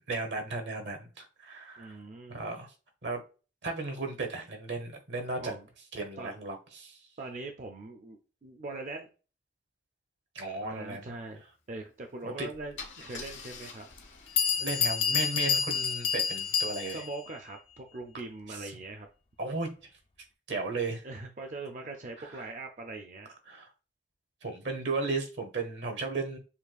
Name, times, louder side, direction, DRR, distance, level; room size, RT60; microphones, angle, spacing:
voice 1, 0.0-2.0 2.3-2.7 3.0-3.2 3.6-5.5 5.9-7.0 10.3-11.1 12.2-12.5 14.6-17.0 18.5-18.7 19.4-19.7 20.5-21.0 22.2-22.4 23.5-23.7 24.4-26.4, right 3 dB, 75° right, 1.0 m, -35 dB
voice 2, 1.8-2.4 5.4-5.7 6.2-6.3 7.2-9.1 10.6-11.4 11.7-13.9 16.9-19.1 21.0-23.3, right 2 dB, 40° right, 0.4 m, -41 dB
Car / Engine starting / Idling, 12.0-12.2 12.8-16.6, left 5 dB, 85° left, 1.2 m, -48 dB
Bell, 13.2-13.3 14.0-14.1 14.4-17.2, left 7 dB, 30° left, 0.3 m, -28 dB
6.9 x 2.3 x 2.4 m
head